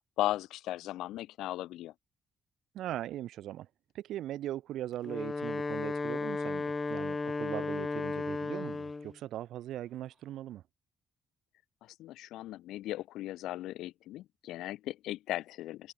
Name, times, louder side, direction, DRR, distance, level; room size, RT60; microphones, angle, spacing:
voice 1, 0.2-1.9 12.0-15.9, left 15 dB, 90° left, 6.5 m, -37 dB
voice 2, 2.7-3.7 3.9-10.6, right 13 dB, 80° right, 5.0 m, -40 dB
Wind instrument woodwind instrument, 4.9-9.1, left 3 dB, 25° left, 5.4 m, -34 dB
cardioid pair, 90°, 0 cm